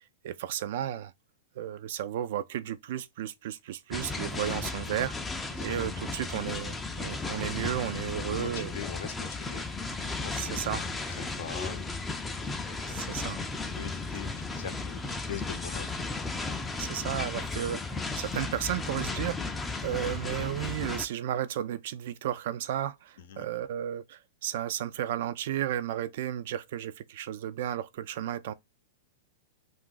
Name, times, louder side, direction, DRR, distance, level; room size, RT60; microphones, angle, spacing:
voice 1, 0.2-1.1 1.6-5.2 5.6-8.7 10.3-10.8 12.9-13.4 16.8-28.5, right 11 dB, 65° right, 0.4 m, -33 dB
sound 1, 3.9-21.1, left 3 dB, 10° left, 0.4 m, -35 dB
voice 2, 8.1-9.6 10.0-12.0 12.7-13.0 13.7-15.9 16.7-16.9 20.0-20.1 23.2-23.4, left 8 dB, 70° left, 0.6 m, -43 dB
2.4 x 2.4 x 3.7 m
hypercardioid pair, 130°, 0 cm